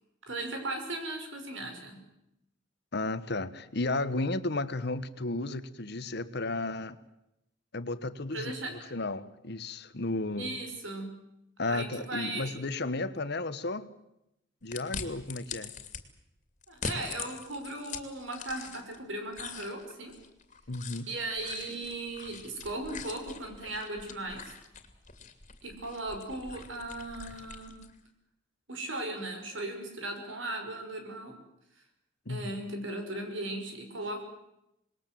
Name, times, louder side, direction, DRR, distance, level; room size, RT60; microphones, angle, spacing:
voice 1, 0.3-2.0 8.3-8.7 10.4-11.1 11.6-12.5 16.7-20.1 21.1-24.5 25.6-27.8 28.7-31.3 32.3-34.2, right 2 dB, 85° right, 5.8 m, -37 dB
voice 2, 2.9-7.0 7.7-10.6 11.6-13.9 14.6-15.7 20.7-21.1 32.3-32.5, left 2 dB, 60° left, 1.3 m, -33 dB
sound 1, 14.7-16.0 16.6-19.0 19.3-28.0, left 5 dB, 40° left, 2.6 m, -43 dB
27.0 x 20.5 x 7.7 m
head